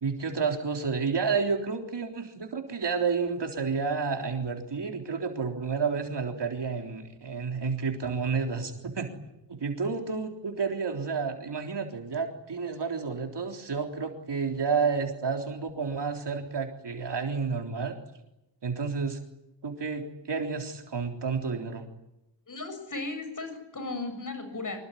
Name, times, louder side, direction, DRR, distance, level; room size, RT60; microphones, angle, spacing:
voice 1, 0.0-9.1 9.5-18.0 18.6-19.2 19.6-21.8, right 5 dB, 70° right, 3 dB, 3.7 m, -30 dB
voice 2, 22.5-24.9, left 3 dB, 45° left, 7 dB, 7.5 m, -36 dB
25.5 x 22.5 x 10.0 m, 0.88 s
wide cardioid pair, 125°, 44 cm